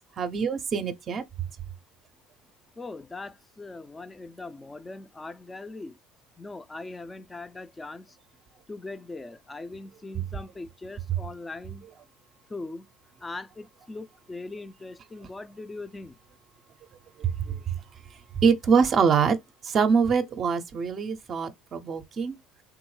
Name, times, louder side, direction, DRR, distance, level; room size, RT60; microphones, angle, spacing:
voice 1, 0.2-1.2 17.2-17.7 18.4-19.4 19.6-22.4, right 6 dB, 40° right, 0.5 m, -24 dB
voice 2, 2.8-6.0 6.4-8.2 8.7-11.8 12.5-12.9 13.2-16.2, left 3 dB, 15° left, 0.4 m, -40 dB
3.5 x 2.0 x 3.1 m
supercardioid pair, 100°, 0 cm